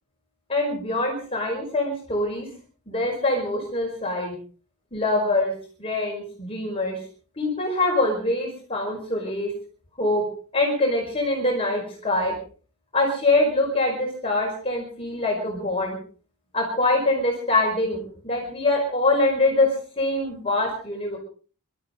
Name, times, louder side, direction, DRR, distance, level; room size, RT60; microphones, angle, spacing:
voice 1, 0.5-2.5 2.9-4.3 4.9-5.5 5.8-7.0 7.4-9.5 10.0-10.3 10.5-12.3 12.9-16.0 16.5-21.2, left 2 dB, 25° left, -1 dB, 5.1 m, -24 dB
26.0 x 13.5 x 3.9 m, 0.41 s
head